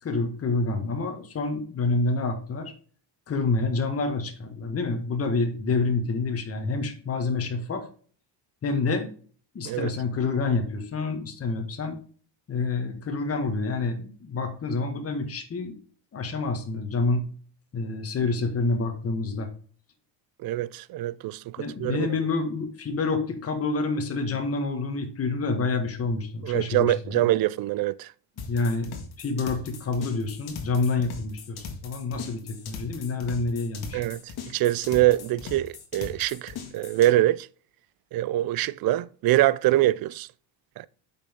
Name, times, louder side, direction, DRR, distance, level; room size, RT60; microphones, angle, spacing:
voice 1, 0.0-2.7 3.3-7.9 8.6-9.1 9.5-12.0 12.5-15.7 16.1-17.2 17.7-19.5 21.6-27.3 28.4-34.0, left 3 dB, 30° left, 1.6 m, -28 dB
voice 2, 20.4-22.1 26.4-28.1 33.9-37.5 38.1-40.3 40.8-40.9, right 15 dB, 50° right, 0.5 m, -24 dB
sound 1, 28.4-37.1, left 6 dB, 55° left, 2.1 m, -39 dB
8.2 x 6.0 x 3.6 m
cardioid pair, 130°, 45 cm